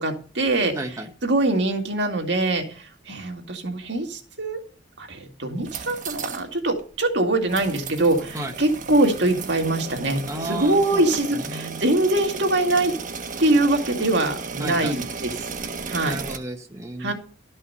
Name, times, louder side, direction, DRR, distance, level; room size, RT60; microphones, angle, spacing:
voice 1, 0.0-0.7 1.2-4.6 5.0-12.9 13.4-15.3 15.9-16.2 17.0-17.1, right 2 dB, 65° right, 3 dB, 2.2 m, -23 dB
voice 2, 0.7-1.1 8.3-8.5 10.3-11.8 14.6-15.0 16.0-17.1, right 2 dB, 15° right, 3 dB, 1.1 m, -33 dB
sound 1, 5.5-6.5 6.8-6.9 7.5-16.4, right 4 dB, 45° right, 1.2 m, -34 dB
13.0 x 5.6 x 6.8 m, 0.40 s
head